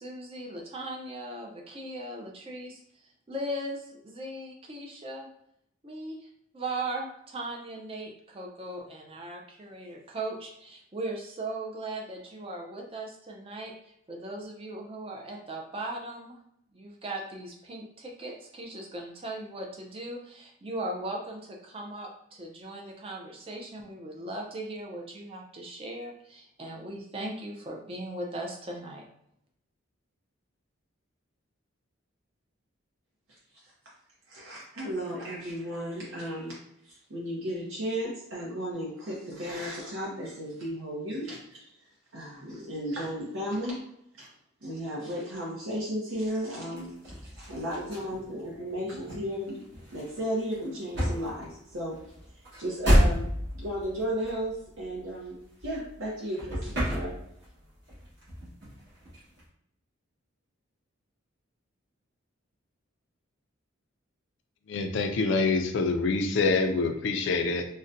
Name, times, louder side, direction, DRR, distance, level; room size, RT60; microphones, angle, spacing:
voice 1, 0.0-2.8 3.3-5.3 5.8-6.3 6.5-13.7 14.1-16.4 16.7-29.0, right 1 dB, 25° right, 0 dB, 0.4 m, -38 dB
voice 2, 34.3-36.5 36.9-41.6 42.1-43.8 44.2-44.3 44.6-46.9 47.2-49.6 49.9-52.0 52.6-53.2 53.5-57.1, equal, 70° right, -5 dB, 0.7 m, -34 dB
sound 1, 46.8-56.1 56.3-57.6 57.9-59.4, equal, 50° right, 1.5 m, -30 dB
voice 3, 64.7-67.6, left 3 dB, 60° left, 6 dB, 0.3 m, -26 dB
3.9 x 2.1 x 2.5 m, 0.74 s
head